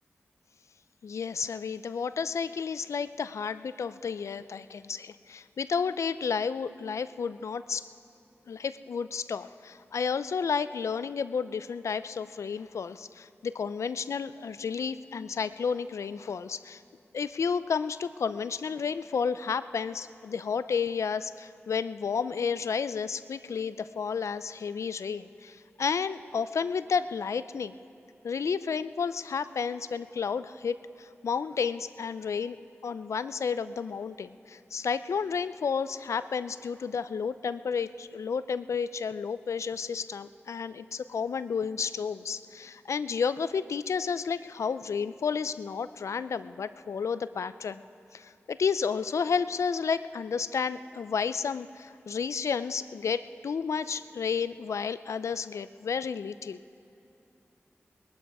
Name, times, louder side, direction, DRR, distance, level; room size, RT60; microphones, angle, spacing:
voice 1, 1.0-7.9 8.5-16.8 17.1-27.8 28.2-32.6 32.8-47.8 48.1-56.6, left 6 dB, 80° left, 14 dB, 0.4 m, -31 dB
20.5 x 12.0 x 4.8 m, 2.9 s
cardioid pair, 45°, 5 cm